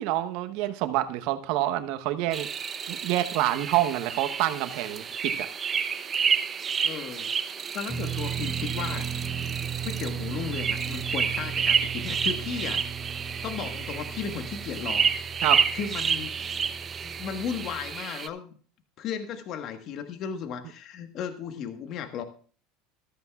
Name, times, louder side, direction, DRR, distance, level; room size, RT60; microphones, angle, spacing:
voice 1, 0.0-2.5 2.9-5.5 15.4-15.6, right 14 dB, 65° right, 10 dB, 1.0 m, -27 dB
sound 1, 2.3-18.3, right 7 dB, 30° right, 0.8 m, -30 dB
voice 2, 6.8-7.3 7.7-9.1 9.8-12.8 13.4-15.1 15.7-16.3 17.0-18.6 19.0-22.2, left 7 dB, 50° left, 8 dB, 1.4 m, -35 dB
sound 2, 7.9-17.9, right 7 dB, 5° right, 0.9 m, -36 dB
14.0 x 13.5 x 2.4 m, 0.41 s
supercardioid pair, 100°, 0 cm